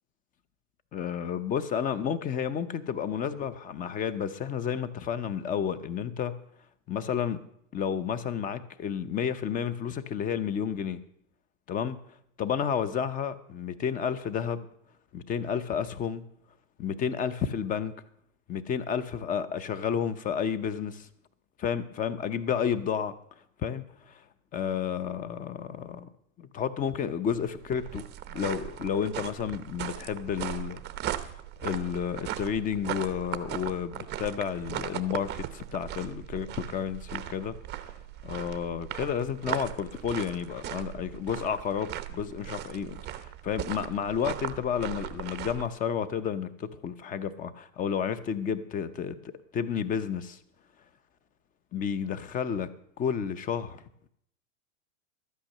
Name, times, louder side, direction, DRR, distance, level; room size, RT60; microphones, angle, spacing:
voice 1, 0.9-6.3 6.9-7.4 7.7-11.0 11.7-12.0 12.4-14.7 15.1-16.2 16.8-18.0 18.5-21.1 21.6-23.1 23.6-24.2 24.5-26.1 26.4-30.8 31.2-31.3 31.6-37.9 38.2-50.4 51.7-53.8, left 8 dB, 20° left, 13 dB, 0.7 m, -31 dB
sound 1, 27.3-45.7, right 12 dB, 25° right, 0.8 m, -38 dB
12.5 x 8.9 x 6.6 m, 0.71 s
hypercardioid pair, 130°, 40 cm